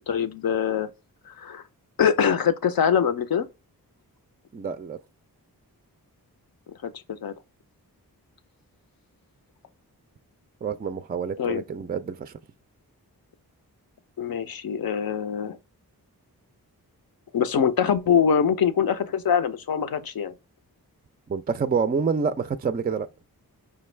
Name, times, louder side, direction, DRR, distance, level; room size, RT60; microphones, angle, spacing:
voice 1, 0.1-0.9 1.3-1.6 2.0-3.5 6.8-7.3 11.4-11.6 14.2-15.6 17.3-20.3, left 7 dB, 65° left, 0.6 m, -23 dB
voice 2, 4.5-5.0 10.6-12.3 21.3-23.1, right 5 dB, 25° right, 0.3 m, -27 dB
5.2 x 2.3 x 3.2 m
cardioid pair, 45°, 38 cm